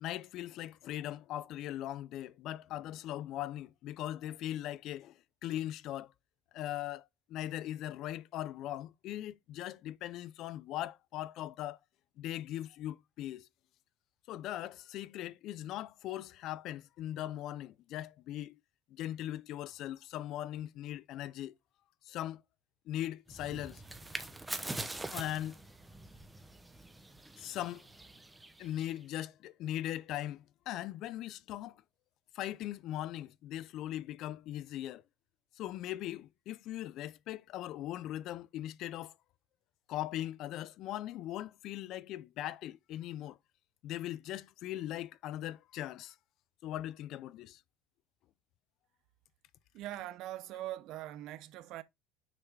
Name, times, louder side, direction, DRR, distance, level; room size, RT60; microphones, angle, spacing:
voice 1, 0.0-6.1 6.5-11.8 12.2-13.5 14.3-18.6 18.9-21.6 22.1-22.4 22.9-23.8 25.1-25.6 27.4-27.9 28.6-31.8 32.3-35.0 35.6-39.1 39.9-43.4 43.8-46.2 46.6-47.6, left 13 dB, 55° left, 0.4 m, -40 dB
sound 1, 23.3-29.0, right 2 dB, 10° right, 0.8 m, -44 dB
voice 2, 49.7-51.8, right 14 dB, 60° right, 0.6 m, -42 dB
6.5 x 3.5 x 4.6 m
supercardioid pair, 120°, 0 cm